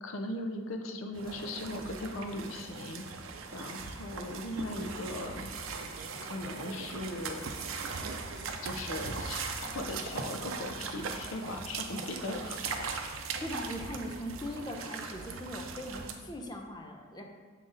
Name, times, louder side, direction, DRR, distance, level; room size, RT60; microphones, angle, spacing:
voice 1, 0.0-3.0 3.5-5.5 6.2-7.5 8.6-12.8, left 1 dB, 85° left, 4 dB, 0.6 m, -38 dB
sound 1, 1.1-16.1, right 4 dB, 85° right, 0.6 m, -39 dB
voice 2, 13.4-17.2, equal, 20° left, 2 dB, 0.6 m, -40 dB
6.4 x 3.9 x 3.9 m, 1.5 s
head